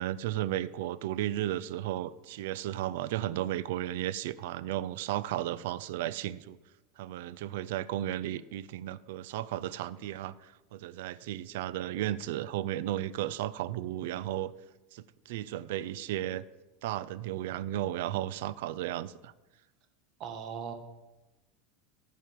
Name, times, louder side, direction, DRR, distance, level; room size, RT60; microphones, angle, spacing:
voice 1, 0.0-6.6 7.0-14.5 14.9-16.4 16.8-19.3, right 13 dB, 75° right, 17 dB, 0.4 m, -34 dB
voice 2, 20.2-20.7, right 7 dB, 45° right, 6 dB, 1.2 m, -38 dB
14.0 x 5.0 x 4.6 m, 1.0 s
supercardioid pair, 140°, 0 cm